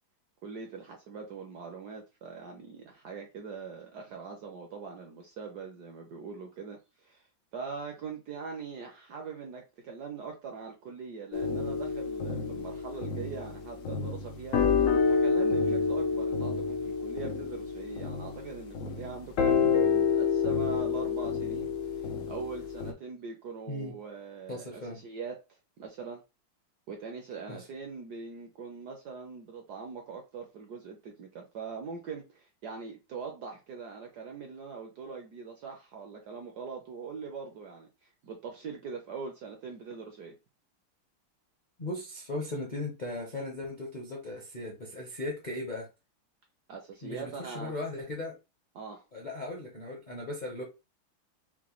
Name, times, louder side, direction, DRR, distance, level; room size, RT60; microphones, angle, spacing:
voice 1, 0.4-7.2 7.5-21.7 22.3-25.4 25.8-26.2 26.9-37.9 38.2-40.3 46.7-47.7 48.7-49.0, right 5 dB, 65° right, 1.0 m, -42 dB
sound 1, 11.3-22.9, left 5 dB, 90° left, 0.7 m, -28 dB
voice 2, 24.5-25.0 27.5-27.7 41.8-45.9 47.0-48.4 49.1-50.6, left 2 dB, 40° left, 0.6 m, -37 dB
6.0 x 2.2 x 3.0 m
omnidirectional pair, 2.4 m